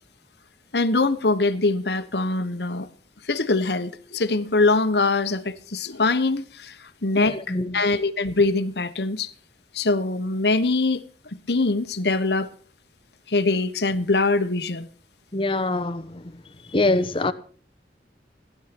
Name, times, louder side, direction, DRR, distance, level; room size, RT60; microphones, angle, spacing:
voice 1, 0.7-2.9 3.2-7.4 7.7-9.3 9.7-11.0 11.5-12.5 13.3-14.9, left 3 dB, 70° left, 1.2 m, -23 dB
voice 2, 7.2-7.8 15.3-16.2 16.7-17.3, left 2 dB, 30° left, 1.0 m, -24 dB
16.0 x 11.5 x 6.0 m
head